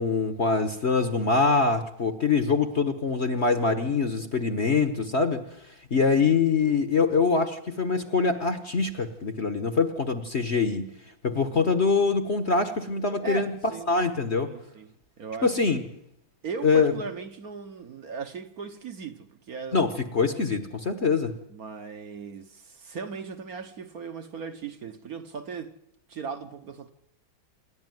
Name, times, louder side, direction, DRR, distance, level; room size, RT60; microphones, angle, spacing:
voice 1, 0.0-5.4 5.9-10.9 11.2-14.5 15.4-15.8 16.6-16.9 19.7-21.3, left 4 dB, 40° left, 1.2 m, -24 dB
voice 2, 11.3-11.7 13.2-13.9 14.4-15.5 16.4-19.9 21.5-25.8 26.1-26.9, right 5 dB, 55° right, 1.5 m, -38 dB
28.0 x 11.5 x 9.3 m
omnidirectional pair, 2.1 m